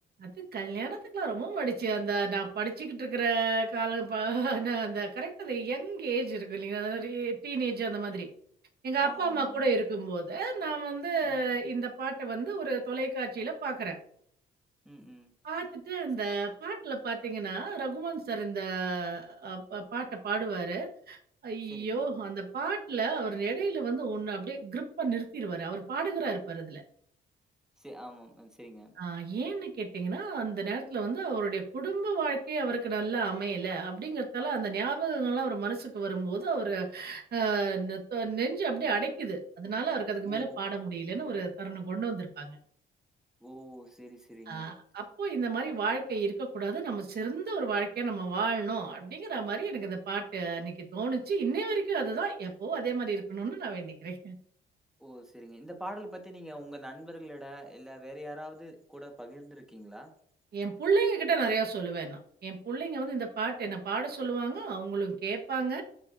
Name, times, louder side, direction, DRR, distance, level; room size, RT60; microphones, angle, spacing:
voice 1, 0.2-8.3 8.8-14.0 15.4-21.2 21.4-26.8 29.0-42.6 44.5-54.3 60.5-65.8, right 4 dB, 55° right, 2 dB, 1.5 m, -32 dB
voice 2, 9.0-9.7 11.2-11.6 14.8-15.3 21.7-22.0 27.8-28.9 40.2-40.6 43.4-44.7 55.0-60.1, equal, 5° right, 3 dB, 1.6 m, -45 dB
13.0 x 4.8 x 2.7 m, 0.65 s
cardioid pair, 90°, 20 cm